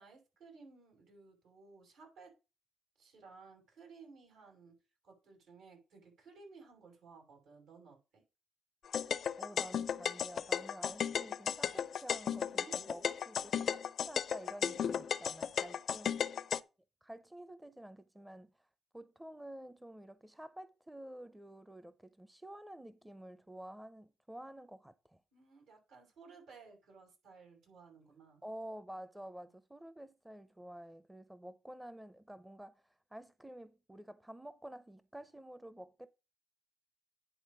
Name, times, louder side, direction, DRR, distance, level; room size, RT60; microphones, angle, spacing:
voice 1, 0.0-2.4 3.0-4.8 5.0-8.2 12.5-13.1 13.4-13.6 15.6-16.0 25.3-28.4, right 4 dB, 80° right, 5.7 m, -57 dB
sound 1, 8.9-16.6, left 8 dB, 60° left, 0.5 m, -35 dB
voice 2, 9.4-13.8 14.0-16.2 17.0-18.5 18.9-25.2 28.4-32.8 33.1-36.1, right 1 dB, 10° right, 0.6 m, -50 dB
10.0 x 4.0 x 6.2 m
cardioid pair, 90°, 0 cm